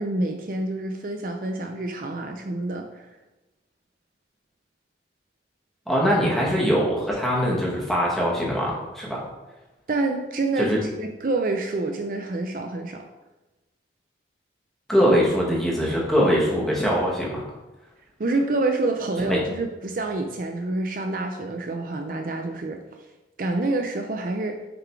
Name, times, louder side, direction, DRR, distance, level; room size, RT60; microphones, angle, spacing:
voice 1, 0.0-3.1 9.9-13.1 18.2-22.8 23.4-24.6, right 2 dB, 50° right, 4 dB, 0.5 m, -27 dB
voice 2, 5.9-9.2 10.6-10.8 14.9-17.4 19.3-19.4, equal, ahead, -5 dB, 1.4 m, -22 dB
6.7 x 3.9 x 4.6 m, 1.1 s
head